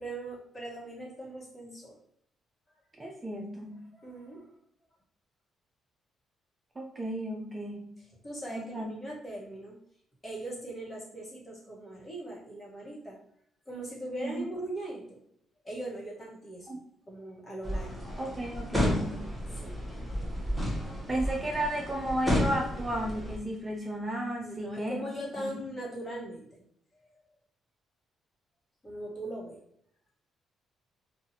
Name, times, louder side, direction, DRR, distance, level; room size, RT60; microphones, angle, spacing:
voice 1, 0.0-1.9 3.9-4.5 8.2-9.8 10.2-13.2 13.7-15.2 15.6-16.8 17.1-18.1 19.5-19.8 24.4-26.6 27.1-27.2 28.8-29.6, right 1 dB, 25° left, -4 dB, 1.2 m, -40 dB
voice 2, 3.0-3.8 6.8-8.0 8.5-8.9 14.2-14.4 16.7-16.8 18.2-19.3 21.1-25.0 25.4-25.5, right 1 dB, 25° right, 0 dB, 0.5 m, -33 dB
sound 1, 17.6-23.4, left 1 dB, ahead, 0.9 m, -32 dB
2.6 x 2.4 x 2.8 m, 0.69 s
cardioid pair, 90°, 0 cm